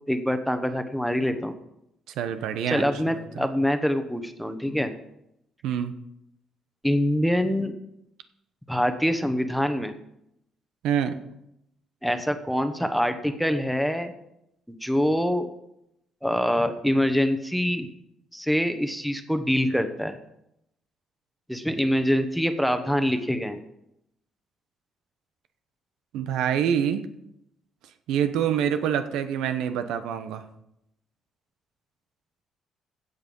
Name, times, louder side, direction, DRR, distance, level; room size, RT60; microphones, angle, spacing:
voice 1, 0.1-1.6 2.7-4.9 6.8-7.7 8.7-9.9 12.0-14.1 14.7-15.5 16.2-17.9 18.3-20.2 21.5-23.6, equal, ahead, 8 dB, 1.0 m, -25 dB
voice 2, 2.2-3.4 5.6-5.9 10.8-11.2 26.1-27.1 28.1-30.4, right 9 dB, 90° right, 9 dB, 1.0 m, -26 dB
16.0 x 6.7 x 5.4 m, 0.81 s
cardioid pair, 125°, 0 cm